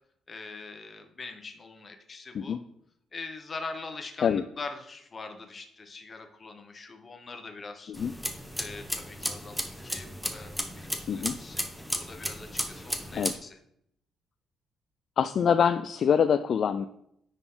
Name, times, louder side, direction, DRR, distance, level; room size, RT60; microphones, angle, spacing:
voice 1, 0.3-2.6 3.1-7.9 8.6-11.7 12.0-13.6, left 3 dB, 35° left, 6 dB, 1.1 m, -43 dB
sound 1, 7.9-13.4, equal, ahead, 0.9 m, -35 dB
voice 2, 11.1-11.4 13.1-13.3 15.2-16.9, left 7 dB, 55° left, 10 dB, 0.3 m, -25 dB
9.7 x 4.0 x 3.8 m, 0.73 s
cardioid pair, 90°, 0 cm